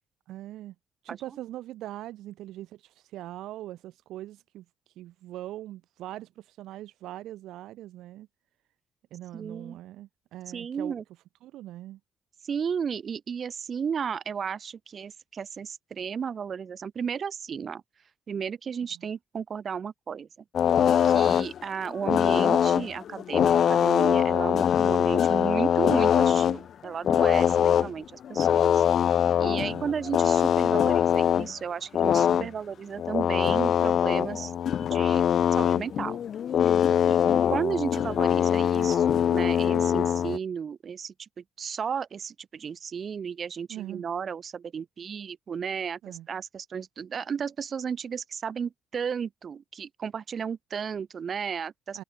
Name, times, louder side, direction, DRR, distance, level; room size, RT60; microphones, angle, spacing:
voice 1, 0.3-0.7 1.0-4.6 5.0-8.3 9.1-11.0 11.4-12.0 18.9-19.1 27.5-27.8 29.5-29.9 32.3-32.5 36.9-37.4 43.7-44.0 46.0-46.3 51.9-52.0, right 14 dB, 85° right, 3.0 m, -41 dB
voice 2, 9.3-9.8 10.5-11.0 12.4-17.8 18.3-20.3 21.0-28.8 29.4-34.5 34.8-35.2 35.5-36.2 36.6-36.7 37.1-37.2 37.5-52.0, right 7 dB, 50° right, 1.4 m, -34 dB
sound 1, 20.5-21.6 21.9-26.6 26.9-27.9 28.2-31.5 31.9-32.5 33.0-40.4, left 9 dB, 60° left, 0.9 m, -23 dB
cardioid pair, 90°, 0 cm